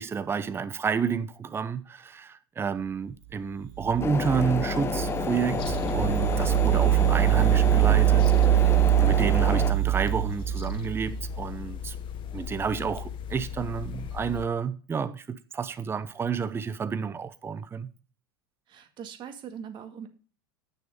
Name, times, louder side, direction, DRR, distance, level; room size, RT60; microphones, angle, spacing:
voice 1, 0.0-12.0 12.3-17.9, right 6 dB, 20° right, 0.8 m, -30 dB
sound 1, 3.8-11.3, right 19 dB, 65° right, 0.8 m, -23 dB
sound 2, 4.0-9.7, left 6 dB, 20° left, 0.6 m, -30 dB
sound 3, 5.6-14.5, left 9 dB, 40° left, 1.0 m, -37 dB
voice 2, 5.8-6.9 18.7-20.1, right 7 dB, 40° right, 2.0 m, -42 dB
9.0 x 6.5 x 5.1 m
hypercardioid pair, 100°, 12 cm